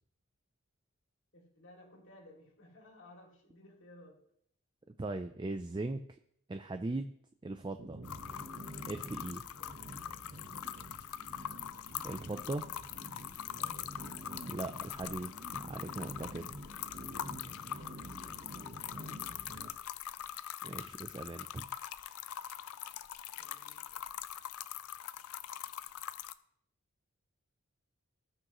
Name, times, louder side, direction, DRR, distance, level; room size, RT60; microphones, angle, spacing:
voice 1, 1.3-4.2 9.6-9.7 10.2-11.0 13.5-13.9 17.4-19.1 23.4-24.0, left 1 dB, 55° left, 0 dB, 2.5 m, -59 dB
voice 2, 5.0-6.0 6.5-7.1 7.4-8.0 8.9-9.4 12.0-12.6 14.5-16.5 20.6-21.7, right 2 dB, 20° right, 8 dB, 0.4 m, -39 dB
sound 1, 7.8-19.7, right 1 dB, 45° right, 1.0 m, -48 dB
sound 2, 8.0-26.3, left 10 dB, 80° left, 0.5 m, -43 dB
18.0 x 6.3 x 3.0 m, 0.69 s
head